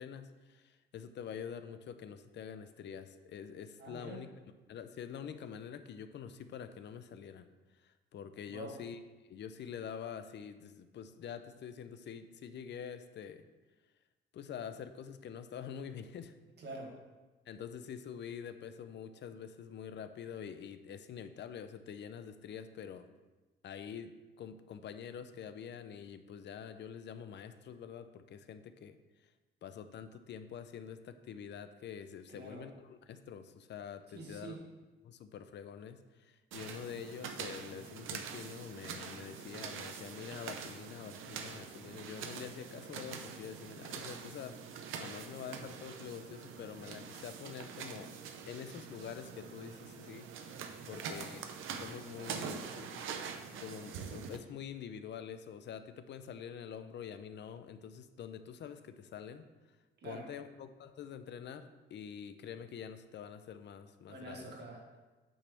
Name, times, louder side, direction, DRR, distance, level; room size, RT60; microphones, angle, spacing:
voice 1, 0.0-4.3 4.7-7.5 7.8-9.0 9.3-13.5 14.3-16.4 17.5-23.0 23.6-24.1 24.4-29.0 29.6-34.6 35.0-48.1 48.5-51.4 51.8-53.1 53.6-59.5 60.0-64.5, left 8 dB, 60° left, 10 dB, 0.6 m, -46 dB
voice 2, 3.8-4.2 8.5-8.8 16.6-17.0 32.3-32.7 34.1-34.7 50.9-51.2 60.0-60.3 64.1-65.0, right 2 dB, 60° right, 0 dB, 1.8 m, -46 dB
sound 1, 36.5-54.4, right 6 dB, 85° right, 0.7 m, -45 dB
8.7 x 3.4 x 6.2 m, 1.2 s
cardioid pair, 90°, 20 cm